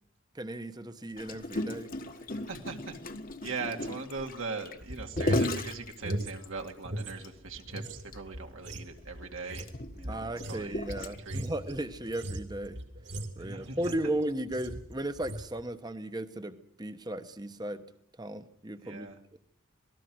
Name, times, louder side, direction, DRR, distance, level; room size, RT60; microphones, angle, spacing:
voice 1, 0.3-1.9 10.1-12.8 13.4-17.8 18.2-19.4, right 1 dB, 20° right, 10 dB, 1.1 m, -36 dB
Gurgling, 1.2-6.7 7.2-7.3 7.6-7.8 8.1-8.2 9.0-11.5 12.1-12.3, left 1 dB, 40° left, 1.4 m, -35 dB
voice 2, 2.2-3.0 3.4-9.7 9.9-11.4 13.4-13.9 18.8-19.2, right 4 dB, 75° right, 2 dB, 2.3 m, -40 dB
sound 1, 4.8-7.2 7.5-14.2 14.5-14.9 15.2-15.5, right 1 dB, 55° right, 2.7 m, -38 dB
26.5 x 19.0 x 6.2 m, 0.69 s
head